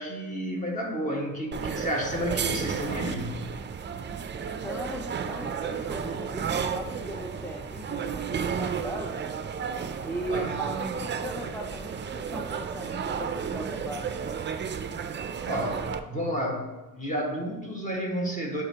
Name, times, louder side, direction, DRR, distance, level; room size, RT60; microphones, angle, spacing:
voice 1, 0.0-3.4 10.3-10.6 15.5-18.6, equal, 20° left, -1 dB, 1.7 m, -31 dB
sound 1, 1.5-16.0, right 6 dB, 35° right, 0.4 m, -32 dB
voice 2, 4.6-9.2 10.0-14.4, right 1 dB, 5° left, -2 dB, 0.6 m, -38 dB
9.9 x 5.1 x 2.9 m, 1.2 s
cardioid pair, 120°, 33 cm